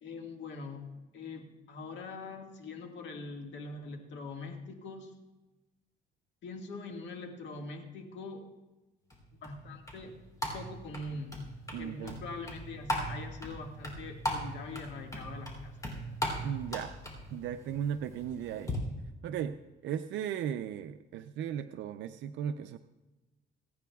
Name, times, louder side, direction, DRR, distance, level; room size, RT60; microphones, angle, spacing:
voice 1, 0.0-5.1 6.4-8.4 9.4-10.1 10.5-11.5 11.8-15.7, left 3 dB, 75° left, 3 dB, 1.8 m, -43 dB
sound 1, 9.1-18.8, equal, 20° left, 3.2 m, -39 dB
voice 2, 11.7-12.2 16.4-16.9 17.3-18.8 19.2-19.5 19.8-22.8, right 9 dB, 85° right, 9 dB, 0.5 m, -36 dB
27.5 x 9.2 x 2.3 m, 1.1 s
cardioid pair, 120°, 19 cm